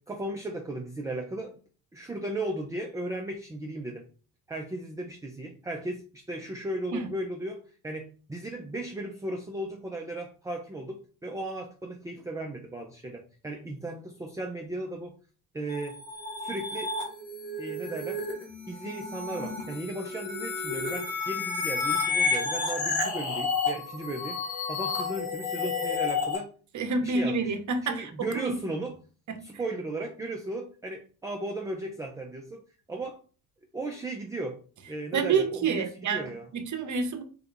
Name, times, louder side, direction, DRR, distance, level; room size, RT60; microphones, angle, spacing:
voice 1, 0.0-1.6 1.9-4.0 4.5-15.2 15.5-16.0 16.4-17.0 17.6-18.2 18.7-24.4 24.7-26.5 27.0-27.5 27.8-29.0 29.4-32.6 32.9-33.2 33.7-34.6 34.9-36.5, right 1 dB, 5° right, 2 dB, 0.4 m, -36 dB
sound 1, 15.7-26.4, left 4 dB, 80° left, 1.8 m, -31 dB
voice 2, 26.7-28.6 29.3-29.4 35.1-36.3 36.5-37.2, right 4 dB, 40° right, 7 dB, 0.8 m, -28 dB
3.8 x 2.3 x 3.8 m, 0.38 s
supercardioid pair, 75°, 48 cm